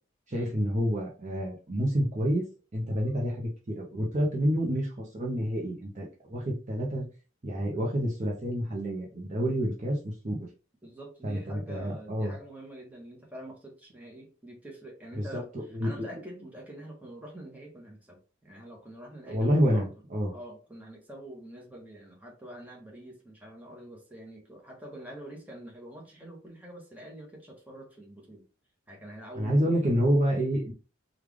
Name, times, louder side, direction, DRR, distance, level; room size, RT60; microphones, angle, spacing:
voice 1, 0.3-2.5 2.7-7.1 7.4-10.4 11.2-12.3 15.2-15.4 15.7-16.0 19.3-20.3 29.4-30.7, equal, 35° right, -2 dB, 0.7 m, -28 dB
voice 2, 10.8-19.9 20.3-28.4 28.9-29.8, right 1 dB, 10° right, -2 dB, 1.0 m, -45 dB
3.2 x 2.4 x 3.5 m, 0.34 s
head